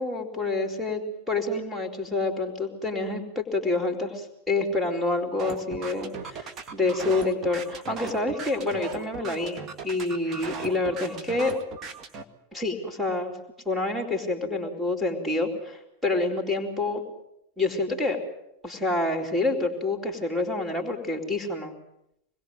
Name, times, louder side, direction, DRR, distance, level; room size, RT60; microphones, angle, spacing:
voice 1, 0.0-11.5 12.5-13.3 13.6-17.0 17.6-18.2 18.6-21.7, left 2 dB, ahead, 3 dB, 4.5 m, -28 dB
sound 1, 5.4-12.2, right 5 dB, 25° right, 2.2 m, -38 dB
27.0 x 21.0 x 8.0 m, 0.81 s
figure-of-eight pair, 90°, 0 cm